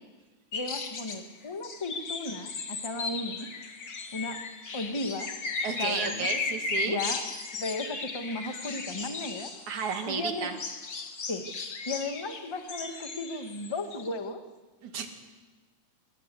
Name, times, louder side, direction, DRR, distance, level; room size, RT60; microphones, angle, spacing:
sound 1, 0.5-1.2 1.6-10.1 10.4-14.1, left 4 dB, 40° left, 2.4 m, -36 dB
voice 1, 0.5-3.5 4.1-4.4 4.7-5.3 5.8-6.3 6.8-7.3 7.6-9.5 10.1-10.5 11.3-11.5 11.9-14.4, left 2 dB, 25° left, 7 dB, 0.6 m, -35 dB
voice 2, 5.6-7.0 9.7-10.6 14.8-15.1, right 6 dB, 75° right, 5 dB, 3.8 m, -32 dB
27.0 x 22.0 x 8.4 m, 1.3 s
omnidirectional pair, 3.4 m